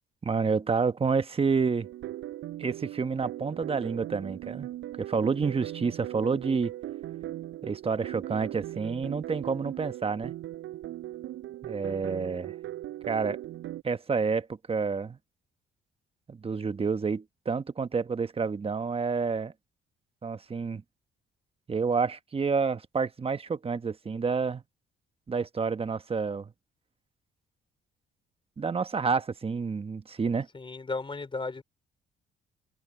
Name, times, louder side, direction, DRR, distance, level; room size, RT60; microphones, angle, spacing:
voice 1, 0.2-1.9 2.6-4.7 5.0-6.7 7.6-10.3 11.6-12.5 13.1-13.4 13.8-15.2 16.3-19.5 20.2-20.8 21.7-24.6 25.3-26.5 28.6-30.5, right 5 dB, 30° right, 1.1 m, -29 dB
sound 1, 1.8-13.8, right 14 dB, 85° right, 7.3 m, -39 dB
voice 2, 30.5-31.6, left 3 dB, 25° left, 3.9 m, -34 dB
open air
cardioid pair, 90°, 20 cm